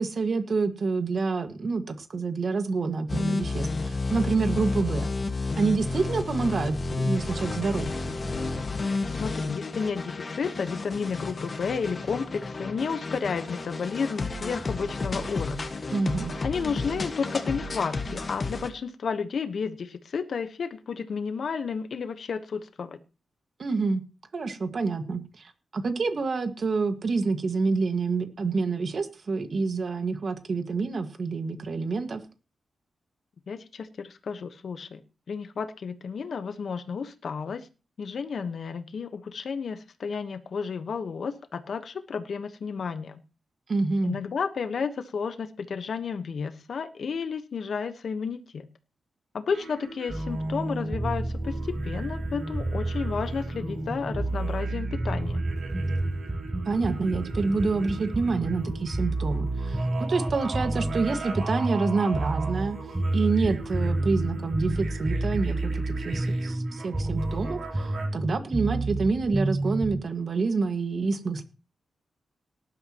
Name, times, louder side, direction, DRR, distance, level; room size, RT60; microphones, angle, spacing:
voice 1, 0.0-5.1 5.6-7.9 15.9-16.3 23.6-24.0 24.3-32.2 43.7-44.2 56.7-62.8 63.1-71.4, right 4 dB, 50° right, 7 dB, 1.8 m, -27 dB
sound 1, 3.1-18.7, left 3 dB, 35° left, 1.7 m, -31 dB
voice 2, 9.1-15.6 16.4-23.0 33.5-35.0 35.3-37.7 38.0-43.2 44.0-48.7 49.3-55.4, left 5 dB, 60° left, 8 dB, 1.2 m, -32 dB
sound 2, 49.5-68.1, right 4 dB, 65° right, 4.8 m, -41 dB
sound 3, 50.1-70.0, right 2 dB, 15° right, 0.8 m, -30 dB
18.5 x 11.5 x 3.1 m, 0.32 s
wide cardioid pair, 120°, 0 cm